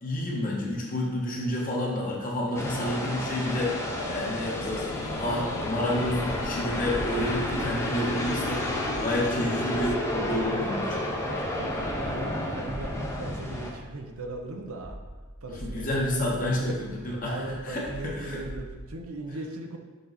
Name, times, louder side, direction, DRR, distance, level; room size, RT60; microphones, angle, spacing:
voice 1, 0.0-3.8 4.1-4.9 5.2-8.6 9.0-11.0 15.5-18.4, left 1 dB, 40° left, -3 dB, 1.2 m, -29 dB
sound 1, 2.5-13.7, left 1 dB, 10° left, 0.7 m, -31 dB
sound 2, 4.0-10.0, left 5 dB, 70° left, 0.4 m, -39 dB
sound 3, 8.8-19.0, equal, 15° right, 1.0 m, -44 dB
voice 2, 11.1-15.0 15.4-16.8 17.0-19.8, right 2 dB, 75° right, 4 dB, 0.7 m, -38 dB
6.9 x 3.9 x 4.1 m, 1.3 s
head